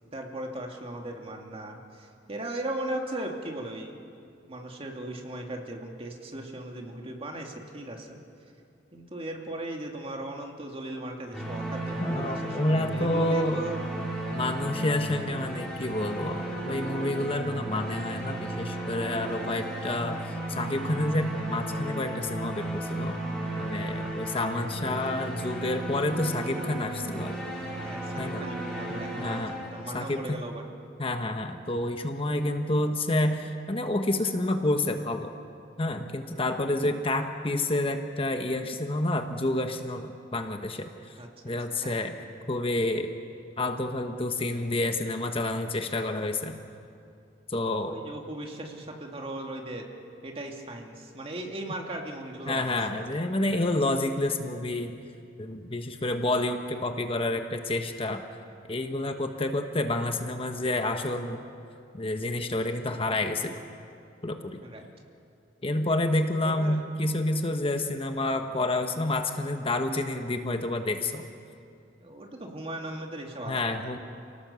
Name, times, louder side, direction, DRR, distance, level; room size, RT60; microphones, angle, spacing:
voice 1, 0.1-3.9 4.5-8.2 8.9-13.8 27.8-30.6 41.2-41.3 41.7-42.3 47.9-49.9 50.2-53.0 64.6-64.9 66.4-66.8 72.0-74.0, right 1 dB, 30° right, 2 dB, 2.3 m, -38 dB
sound 1, 11.3-30.2, right 1 dB, 5° left, 4.7 m, -34 dB
voice 2, 12.0-13.6 14.3-20.2 20.5-23.2 23.5-27.4 28.2-28.4 28.9-29.5 29.9-30.4 31.0-35.3 35.8-40.9 41.4-42.1 42.5-43.1 43.6-46.6 47.5-48.0 52.5-55.0 55.4-58.2 58.7-61.4 61.9-63.5 64.2-64.6 65.6-71.3 73.5-74.0, left 2 dB, 30° left, 6 dB, 1.1 m, -29 dB
29.5 x 18.0 x 7.0 m, 2.5 s
head